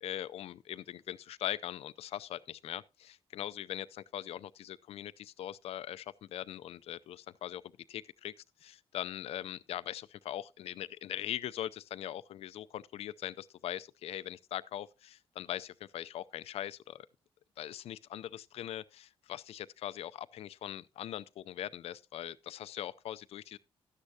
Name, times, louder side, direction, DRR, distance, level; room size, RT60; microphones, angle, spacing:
voice 1, 0.0-7.6 7.9-8.3 8.6-17.1 17.6-23.6, left 11 dB, 80° left, 0.5 m, -41 dB
13.0 x 9.9 x 2.8 m
wide cardioid pair, 175°, 10 cm